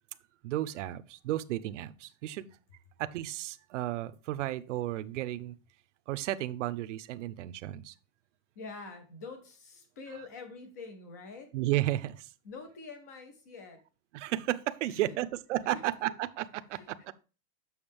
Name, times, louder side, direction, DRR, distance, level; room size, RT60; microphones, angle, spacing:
voice 1, 0.4-2.5 3.0-5.6 6.1-7.9 11.5-12.3 14.1-17.1, right 14 dB, 65° right, 0.6 m, -33 dB
voice 2, 8.6-11.5 12.4-13.8 14.9-15.1 15.7-15.8 16.7-16.9, left 4 dB, 15° left, 0.3 m, -46 dB
7.2 x 6.3 x 3.4 m
supercardioid pair, 170°, 40 cm